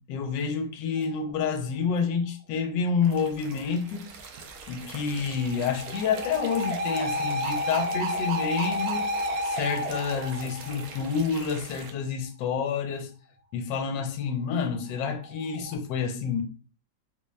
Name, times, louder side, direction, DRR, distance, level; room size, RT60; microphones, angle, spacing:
voice 1, 0.1-4.1 4.7-13.1 13.5-16.4, left 6 dB, 80° left, 1.2 m, -29 dB
sound 1, 1.0-1.4 4.9-11.4 14.9-15.7, equal, 70° right, 1.0 m, -31 dB
sound 2, 3.0-11.9, right 5 dB, 85° right, 0.7 m, -44 dB
3.9 x 2.2 x 3.2 m
omnidirectional pair, 2.0 m